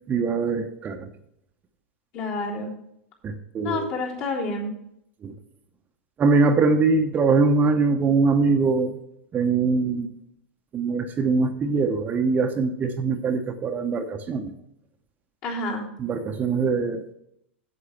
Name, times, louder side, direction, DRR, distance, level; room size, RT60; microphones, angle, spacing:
voice 1, 0.1-1.1 3.2-3.9 5.2-5.3 6.2-9.0 9.3-10.1 10.7-14.5 16.0-17.1, right 4 dB, 25° right, 6 dB, 0.9 m, -22 dB
voice 2, 2.1-2.7 3.6-4.7 15.4-15.9, left 2 dB, 50° left, -4 dB, 3.6 m, -29 dB
8.2 x 7.7 x 5.9 m, 0.78 s
hypercardioid pair, 105°, 7 cm